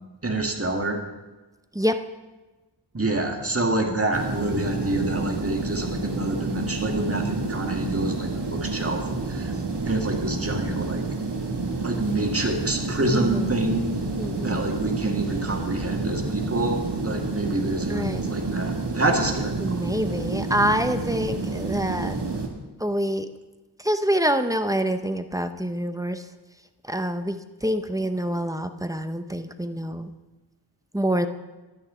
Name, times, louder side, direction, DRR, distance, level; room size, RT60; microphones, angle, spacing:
voice 1, 0.2-1.0 2.9-9.5 9.8-11.0 11.8-14.0 14.4-19.6, right 2 dB, 30° right, 2 dB, 2.0 m, -27 dB
sound 1, 4.1-22.5, right 3 dB, 70° right, 1.7 m, -29 dB
voice 2, 13.1-13.5 14.2-14.7 17.9-18.2 19.6-22.2 22.8-23.3 23.8-26.2 26.9-30.1 30.9-31.3, equal, 10° right, 9 dB, 0.7 m, -26 dB
11.5 x 9.8 x 5.0 m, 1.2 s
wide cardioid pair, 50°, 43 cm